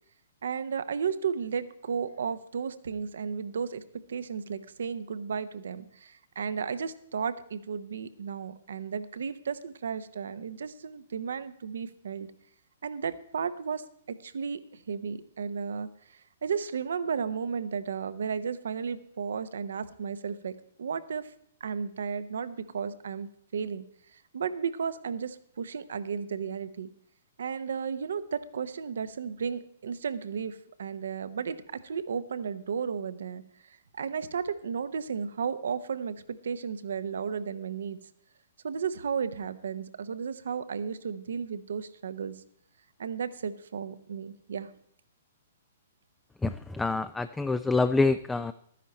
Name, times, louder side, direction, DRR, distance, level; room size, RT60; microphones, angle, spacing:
voice 1, 0.4-12.3 12.8-21.3 21.6-23.8 24.1-26.9 27.4-33.4 33.9-38.0 38.6-42.4 43.0-44.7, right 6 dB, 70° right, 14 dB, 0.9 m, -34 dB
voice 2, 46.4-48.5, left 3 dB, 5° left, 11 dB, 0.4 m, -26 dB
13.0 x 10.0 x 4.3 m, 0.69 s
figure-of-eight pair, 120°, 0 cm